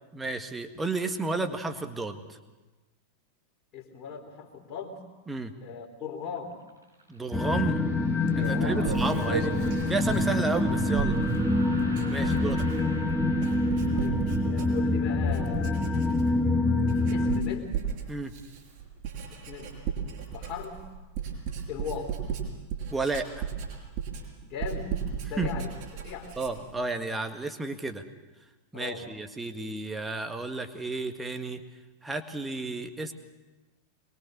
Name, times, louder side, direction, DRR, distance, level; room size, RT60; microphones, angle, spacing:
voice 1, 0.1-2.2 5.3-5.5 7.1-7.8 8.3-9.5 9.9-11.2 12.1-12.6 18.1-18.3 22.9-23.5 25.4-25.7 26.4-28.0 28.7-31.6 32.0-33.1, right 3 dB, 10° right, 7 dB, 1.7 m, -32 dB
voice 2, 3.7-5.0 5.6-6.6 8.5-8.9 12.1-12.9 13.9-15.9 17.1-17.7 19.3-19.7 20.3-20.8 21.7-22.2 24.4-24.9 25.3-26.4 28.7-29.1, left 6 dB, 35° left, -1 dB, 3.3 m, -39 dB
sound 1, 6.3-14.1, right 1 dB, 90° right, 6.0 m, -47 dB
sound 2, 7.3-17.4, left 2 dB, 5° left, 1.8 m, -26 dB
Writing, 8.3-15.0 15.3-16.4 16.8-26.7, right 7 dB, 50° right, 5.6 m, -35 dB
24.0 x 21.5 x 6.7 m, 1.2 s
figure-of-eight pair, 90°, 0 cm